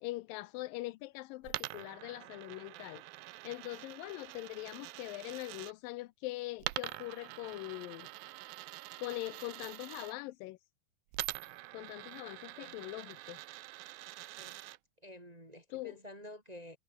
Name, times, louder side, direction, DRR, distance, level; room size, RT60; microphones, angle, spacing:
voice 1, 0.0-3.0 3.4-8.1 9.0-10.6 11.7-13.4 15.7-16.0, left 19 dB, 80° left, 2.2 m, -42 dB
Coin (dropping), 1.4-5.7 6.6-10.1 11.1-14.8, right 19 dB, 85° right, 2.5 m, -45 dB
voice 2, 15.0-16.8, left 1 dB, 15° right, 1.9 m, -50 dB
omnidirectional pair, 4.1 m